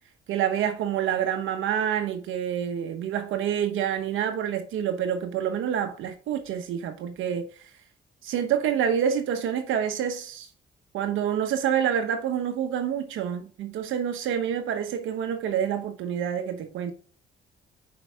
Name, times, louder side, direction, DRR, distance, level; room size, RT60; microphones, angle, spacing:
voice 1, 0.3-7.5 8.2-10.5 10.9-16.9, right 9 dB, 80° right, 1.0 m, -27 dB
6.0 x 4.8 x 3.4 m
cardioid pair, 90°, 20 cm